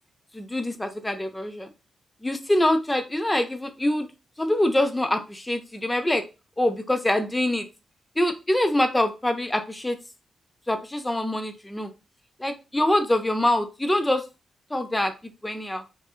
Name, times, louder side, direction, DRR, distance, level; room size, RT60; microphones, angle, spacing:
voice 1, 0.3-1.7 2.2-4.1 4.4-6.2 6.6-7.7 8.2-10.0 10.7-11.9 12.4-14.2 14.7-15.1 15.4-15.8, left 1 dB, 10° left, 6 dB, 0.4 m, -24 dB
2.7 x 2.4 x 2.3 m, 0.29 s
cardioid pair, 85°, 0 cm